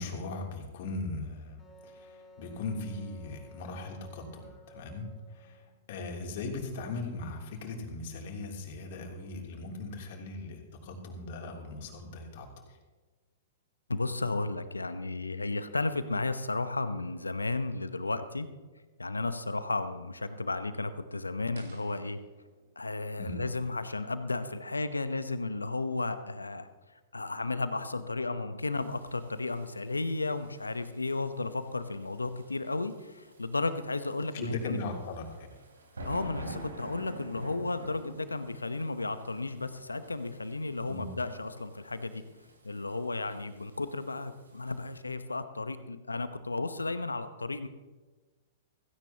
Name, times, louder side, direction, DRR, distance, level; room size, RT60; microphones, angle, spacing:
voice 1, 0.0-5.6 5.9-12.6 23.2-23.4 34.3-35.5 40.9-41.1, left 3 dB, 55° left, 1 dB, 3.2 m, -39 dB
Wind instrument woodwind instrument, 1.6-5.7, equal, 15° left, 4.4 m, -54 dB
voice 2, 13.9-18.5 19.0-22.2 22.8-26.7 27.1-34.8 36.0-42.2 42.6-47.7, left 3 dB, 85° left, 11 dB, 1.0 m, -33 dB
sound 1, 21.5-24.6, right 4 dB, 65° right, 4.4 m, -59 dB
sound 2, 28.7-45.0, right 2 dB, 80° right, 3.5 m, -49 dB
16.5 x 16.5 x 3.0 m, 1.2 s
figure-of-eight pair, 105°, 0 cm